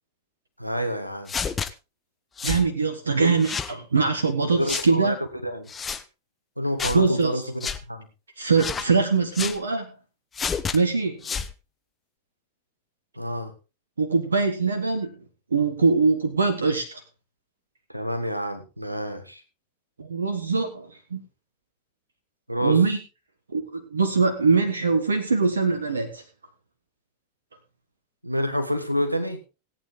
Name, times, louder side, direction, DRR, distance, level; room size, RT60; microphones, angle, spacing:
voice 1, 0.6-1.3 3.2-3.4 4.6-5.1 5.4-5.7 6.6-7.4 7.9-8.0 13.2-13.5 17.9-19.4 22.5-22.8 28.2-29.4, equal, 90° right, 8 dB, 1.7 m, -28 dB
sound 1, 1.3-1.7 2.4-2.7 3.4-3.7 4.7-4.9 5.7-6.0 6.8-7.0 7.6-7.8 8.6-8.9 9.3-9.6 10.3-10.8 11.2-11.5, left 6 dB, 20° left, 0.9 m, -29 dB
voice 2, 2.4-5.1 6.9-7.4 8.4-9.9 10.7-11.3 14.0-15.2 15.5-17.0 20.0-21.2 22.6-23.0 23.5-26.2, right 4 dB, 75° right, 6 dB, 1.5 m, -22 dB
17.5 x 9.0 x 3.7 m, 0.29 s
figure-of-eight pair, 90°, 0 cm